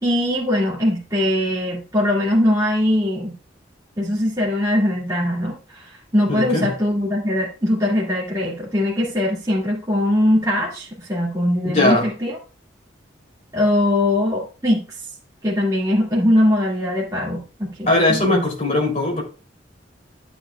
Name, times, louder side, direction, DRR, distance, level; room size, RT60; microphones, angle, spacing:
voice 1, 0.0-3.3 4.0-12.3 13.5-14.8 15.4-18.4, left 1 dB, 20° right, -6 dB, 2.0 m, -21 dB
voice 2, 6.3-6.7 11.7-12.1 17.9-19.2, left 2 dB, 40° left, -2 dB, 3.1 m, -19 dB
12.5 x 7.1 x 2.3 m, 0.34 s
head